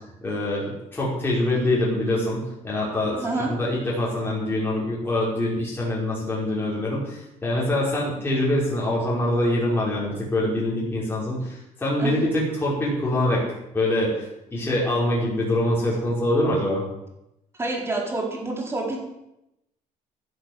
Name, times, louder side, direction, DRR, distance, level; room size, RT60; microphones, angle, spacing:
voice 1, 0.2-13.4 13.7-14.3 14.5-16.8, left 1 dB, 15° left, -6 dB, 5.3 m, -24 dB
voice 2, 3.2-3.5 12.0-12.2 17.6-19.0, right 2 dB, 15° right, 0 dB, 4.6 m, -27 dB
15.5 x 11.0 x 8.0 m, 0.87 s
cardioid pair, 155°, 15 cm